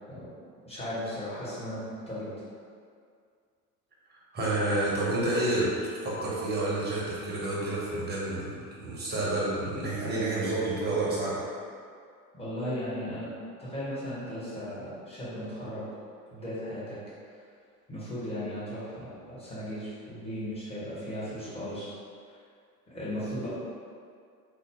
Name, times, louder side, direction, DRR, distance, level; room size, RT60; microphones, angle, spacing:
voice 1, 0.6-2.3 12.4-13.3 13.6-15.8 16.3-17.0 17.9-21.9 22.9-23.5, equal, 10° left, -10 dB, 1.1 m, -36 dB
voice 2, 4.3-5.7 6.0-11.4, right 2 dB, 20° right, -6 dB, 0.9 m, -29 dB
2.6 x 2.0 x 3.5 m, 2.2 s
figure-of-eight pair, 70°, 47 cm